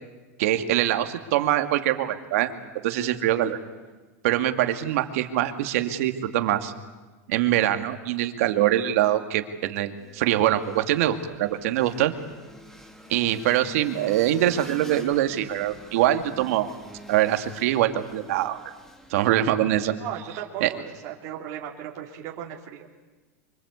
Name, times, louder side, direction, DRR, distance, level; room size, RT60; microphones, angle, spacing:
voice 1, 0.4-2.5 2.8-3.6 4.2-6.7 7.3-12.1 13.1-16.7 17.1-18.6 19.1-19.9 20.6-20.7, right 13 dB, 70° right, 7 dB, 2.3 m, -23 dB
sound 1, 10.0-19.8, equal, 5° left, 2.7 m, -47 dB
voice 2, 20.0-22.9, right 10 dB, 50° right, -1 dB, 3.3 m, -36 dB
24.5 x 24.5 x 8.3 m, 1.2 s
supercardioid pair, 130°, 8 cm